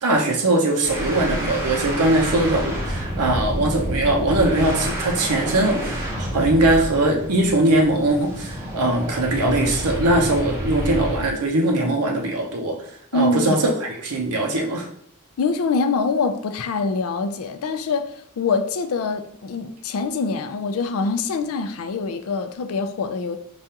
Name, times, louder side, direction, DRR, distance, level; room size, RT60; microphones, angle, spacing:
voice 1, 0.0-12.8 13.1-14.9, right 2 dB, 85° right, 0.6 m, -21 dB
sound 1, 0.8-11.3, equal, 10° right, 0.6 m, -28 dB
voice 2, 13.1-13.6 15.4-23.4, left 4 dB, 70° left, 0.4 m, -24 dB
4.9 x 2.3 x 2.8 m
head